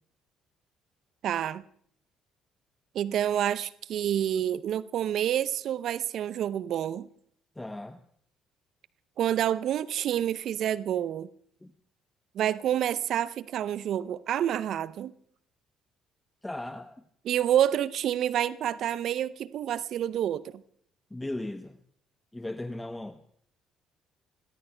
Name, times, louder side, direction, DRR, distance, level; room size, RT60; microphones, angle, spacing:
voice 1, 1.2-1.6 2.9-7.1 9.2-11.3 12.3-15.1 17.2-20.6, right 10 dB, 60° right, 0.6 m, -28 dB
voice 2, 7.6-8.0 11.6-11.7 16.4-17.0 21.1-21.8 22.3-23.2, left 1 dB, 10° left, 0.8 m, -37 dB
28.0 x 21.5 x 2.2 m
hypercardioid pair, 50°, 0 cm